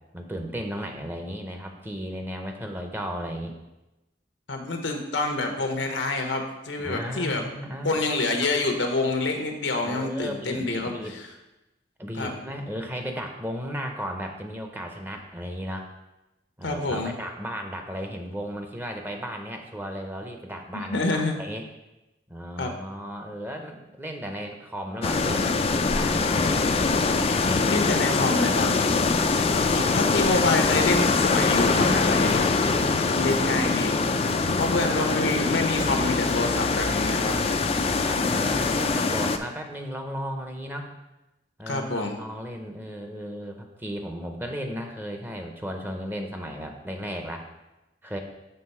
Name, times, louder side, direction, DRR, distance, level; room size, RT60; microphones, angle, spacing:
voice 1, 0.1-3.5 6.8-8.1 9.8-11.2 12.0-15.9 16.6-21.7 22.3-26.9 27.5-28.2 29.1-30.3 32.9-33.7 34.4-34.8 37.3-40.9 41.6-47.4 48.0-48.2, equal, 10° right, 3 dB, 0.7 m, -35 dB
voice 2, 4.5-7.4 7.8-10.9 12.2-12.3 16.6-17.1 20.7-21.4 22.6-22.7 27.7-28.7 29.5-32.5 33.1-34.2 34.6-37.4 41.7-42.2, left 2 dB, 90° left, 4 dB, 1.0 m, -27 dB
sound 1, 25.0-39.4, left 4 dB, 35° left, 0.4 m, -23 dB
sound 2, 31.9-39.0, right 2 dB, 35° right, 0.4 m, -40 dB
6.7 x 3.9 x 5.6 m, 0.99 s
head